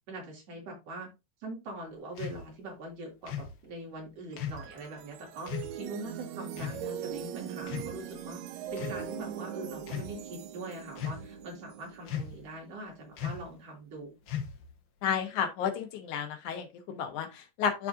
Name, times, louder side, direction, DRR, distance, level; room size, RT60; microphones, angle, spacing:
voice 1, 0.1-1.1 1.4-8.4 8.7-14.1, right 1 dB, 55° right, 4.0 m, -43 dB
sound 1, 2.2-2.4 3.3-3.5 4.4-4.7 5.5-5.7 6.6-6.8 7.6-8.2 8.7-9.0 9.8-10.1 11.0-11.4 12.1-12.5 13.2-13.5 14.3-14.7, left 8 dB, 60° left, 1.6 m, -37 dB
sound 2, 4.3-13.6, right 10 dB, 75° right, 2.0 m, -41 dB
voice 2, 15.0-17.9, left 7 dB, 85° left, 2.7 m, -32 dB
12.0 x 4.3 x 2.7 m
omnidirectional pair, 3.4 m